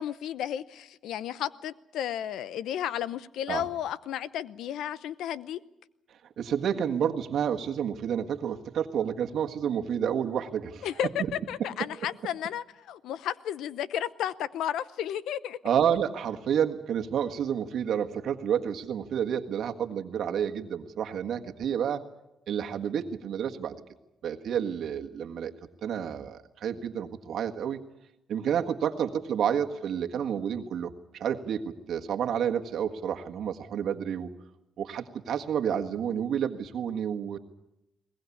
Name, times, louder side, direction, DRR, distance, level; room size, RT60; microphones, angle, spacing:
voice 1, 0.0-5.6 10.8-15.6, left 10 dB, 85° left, 0.8 m, -33 dB
voice 2, 6.4-10.9 15.6-22.0 22.5-23.8 24.2-25.5 25.8-27.8 28.3-34.3 34.8-37.4, right 8 dB, 70° right, 1.7 m, -30 dB
22.0 x 19.5 x 8.5 m
cardioid pair, 75°, 0 cm